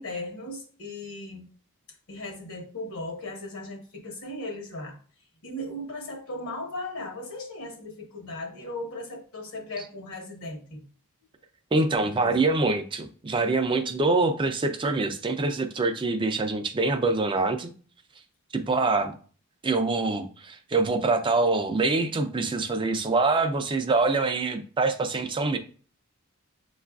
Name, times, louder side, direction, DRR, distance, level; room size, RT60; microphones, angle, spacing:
voice 1, 0.0-1.5 2.1-5.0 5.4-10.8 12.0-12.4, left 1 dB, 70° left, 2 dB, 1.0 m, -37 dB
voice 2, 11.7-17.7 18.5-19.1 19.6-25.6, right 3 dB, 20° right, 7 dB, 0.4 m, -25 dB
7.1 x 2.4 x 2.3 m, 0.41 s
head